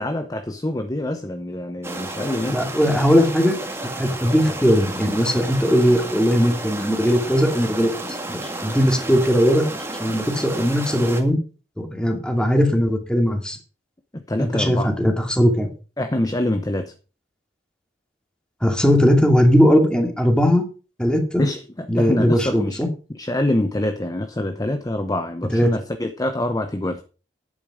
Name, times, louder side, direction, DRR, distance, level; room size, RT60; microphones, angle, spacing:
voice 1, 0.0-2.6 14.1-14.9 16.0-16.9 21.4-22.9 23.1-27.0, left 1 dB, 20° left, 0.8 m, -25 dB
sound 1, 1.8-11.2, right 2 dB, 15° right, 1.9 m, -32 dB
voice 2, 2.5-3.6 4.0-9.7 10.0-11.4 11.8-13.6 14.4-15.7 18.6-20.6 21.0-21.4 21.9-22.9 25.5-25.7, equal, 5° left, 2.4 m, -19 dB
11.0 x 8.9 x 4.9 m
head